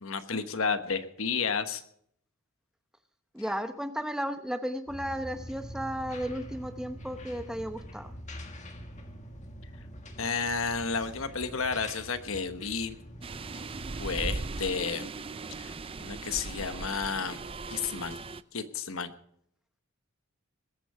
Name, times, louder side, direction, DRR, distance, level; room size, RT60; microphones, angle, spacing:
voice 1, 0.0-1.8 10.2-13.0 14.0-15.1 15.6-17.4 17.7-18.2 18.5-19.1, left 5 dB, 65° left, 10 dB, 1.2 m, -32 dB
voice 2, 3.3-8.1, equal, 5° right, 8 dB, 0.8 m, -34 dB
sound 1, 4.9-14.6, equal, 35° left, 1.7 m, -45 dB
sound 2, 13.2-18.4, right 3 dB, 25° right, 0.5 m, -38 dB
20.5 x 8.4 x 5.5 m, 0.67 s
head